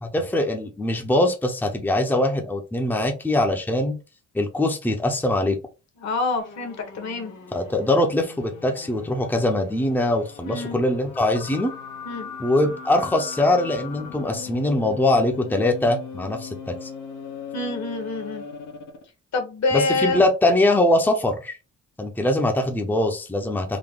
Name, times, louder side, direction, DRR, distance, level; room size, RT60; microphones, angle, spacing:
voice 1, 0.0-4.0 4.3-5.6 7.5-11.7 12.4-16.5 16.8-16.9 19.7-21.6 22.0-23.8, left 1 dB, 5° left, 3 dB, 0.8 m, -22 dB
voice 2, 6.0-7.3 10.4-10.8 12.0-12.3 17.5-18.4 19.3-20.2, left 3 dB, 60° left, 5 dB, 1.4 m, -26 dB
sound 1, 6.4-19.1, left 6 dB, 80° left, 1.0 m, -39 dB
3.9 x 2.2 x 3.7 m, 0.30 s
cardioid pair, 90°, 30 cm